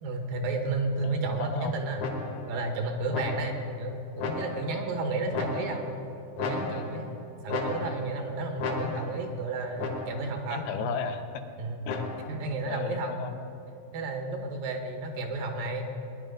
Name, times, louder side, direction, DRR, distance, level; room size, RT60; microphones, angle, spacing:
voice 1, 0.0-2.0 2.5-5.9 6.4-7.1 7.4-10.6 11.6-11.8 12.3-13.1 13.9-15.9, right 2 dB, 70° right, 4 dB, 2.7 m, -32 dB
voice 2, 1.0-1.8 5.1-5.8 10.5-11.4 11.9-12.1 12.7-13.5, left 6 dB, 85° left, 6 dB, 2.9 m, -35 dB
sound 1, 2.0-2.6 3.1-3.7 4.2-4.8 5.3-6.0 6.4-7.1 7.5-8.2 8.6-9.3 9.8-10.4 11.9-12.5, left 3 dB, 60° left, 2.5 m, -34 dB
20.5 x 10.5 x 5.2 m, 2.7 s
omnidirectional pair, 4.4 m